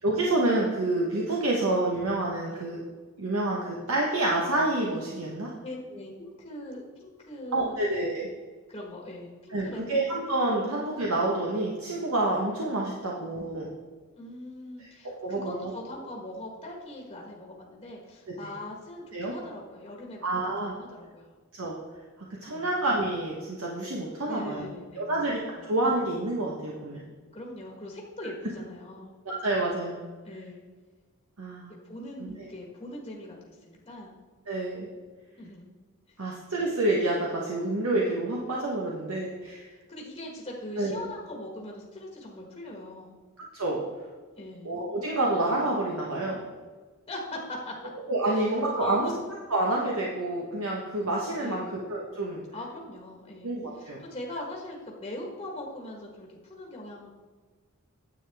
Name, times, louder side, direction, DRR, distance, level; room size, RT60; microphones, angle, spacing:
voice 1, 0.0-2.8 3.2-5.5 7.5-8.2 9.5-13.7 14.8-15.7 19.1-19.3 20.2-20.7 21.5-21.7 22.4-24.6 25.0-25.4 25.7-27.0 29.2-30.1 31.4-31.7 32.2-32.3 34.5-34.9 36.2-39.7 40.8-41.0 43.5-43.8 44.6-46.4 48.1-49.1 49.5-52.4 53.4-54.0, right 2 dB, 75° right, -3 dB, 1.2 m, -28 dB
voice 2, 5.6-7.8 8.7-9.9 13.0-13.1 14.2-20.3 20.8-21.3 22.5-22.7 24.3-25.2 27.3-29.1 30.2-30.6 31.8-34.1 35.4-35.7 36.1-36.3 39.7-43.2 44.3-44.7 47.1-47.7 48.3-49.2 51.4-51.8 52.5-53.5 53.7-57.1, left 1 dB, 25° left, -1 dB, 1.3 m, -41 dB
9.8 x 8.0 x 3.5 m, 1.4 s
head